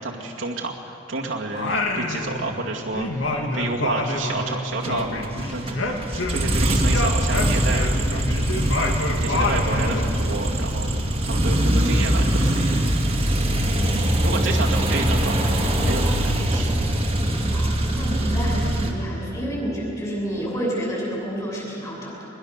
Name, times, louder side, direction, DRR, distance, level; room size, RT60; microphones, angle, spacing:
voice 1, 0.0-3.2 3.5-5.1 5.5-5.6 6.1-8.8 9.2-15.5 15.8-16.7, right 3 dB, 70° right, -2 dB, 2.2 m, -30 dB
Singing, 1.5-2.7 2.9-6.6 6.9-10.1, left 2 dB, 70° left, 2.1 m, -27 dB
sound 1, 4.8-18.9, right 1 dB, 30° right, 2.2 m, -22 dB
voice 2, 9.6-10.0 17.4-22.2, equal, 20° left, -4 dB, 7.4 m, -29 dB
22.5 x 21.0 x 6.6 m, 2.9 s
head